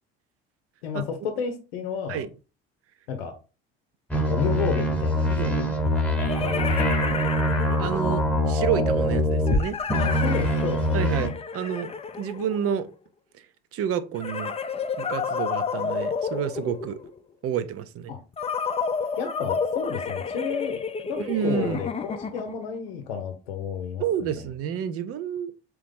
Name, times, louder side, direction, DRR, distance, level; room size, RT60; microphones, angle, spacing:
voice 1, 0.8-2.2 3.1-3.3 4.3-5.6 6.4-6.7 10.0-11.1 18.1-18.2 19.2-24.0 24.3-24.4, left 7 dB, 90° left, 0.7 m, -31 dB
sound 1, 4.1-9.6 9.9-11.3, equal, 5° left, 1.0 m, -24 dB
sound 2, 4.4-4.5 5.9-8.2 9.5-12.9 14.2-17.2 18.4-22.7, left 5 dB, 20° left, 0.5 m, -31 dB
voice 2, 5.3-5.8 6.3-6.4 7.8-9.8 10.9-12.9 13.4-13.5 13.7-14.5 15.0-17.0 17.4-18.1 21.3-21.8 24.0-25.5, right 9 dB, 50° right, 0.6 m, -29 dB
3.7 x 3.1 x 3.5 m
hypercardioid pair, 75°, 30 cm